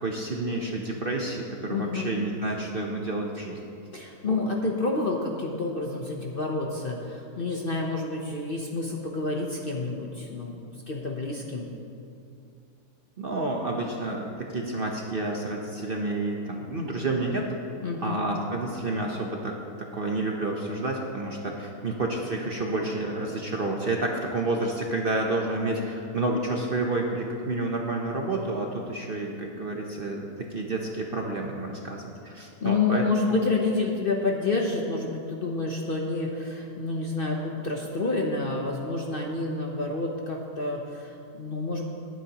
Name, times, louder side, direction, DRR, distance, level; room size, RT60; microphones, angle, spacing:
voice 1, 0.0-3.6 4.3-4.4 13.2-17.4 18.0-19.5 19.9-33.0, right 2 dB, 45° right, 0 dB, 0.9 m, -29 dB
voice 2, 1.7-2.1 3.9-10.5 10.9-11.7 17.8-18.2 32.6-41.8, left 3 dB, 45° left, 0 dB, 0.8 m, -29 dB
19.5 x 9.2 x 3.0 m, 2.5 s
omnidirectional pair, 1.7 m